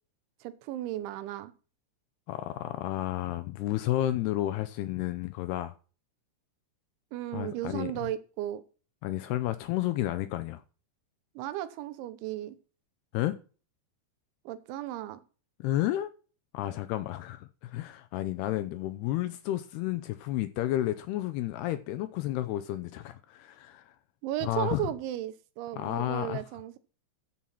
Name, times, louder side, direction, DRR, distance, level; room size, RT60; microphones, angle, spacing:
voice 1, 0.4-1.5 7.1-8.6 11.4-12.6 14.5-15.2 24.2-26.8, right 13 dB, 90° right, 3.3 m, -35 dB
voice 2, 2.3-5.7 7.3-7.9 9.0-10.6 13.1-13.4 15.6-16.1 16.5-24.0 24.4-24.8 25.7-26.4, left 14 dB, 80° left, 2.4 m, -31 dB
13.5 x 5.7 x 5.9 m
omnidirectional pair, 5.2 m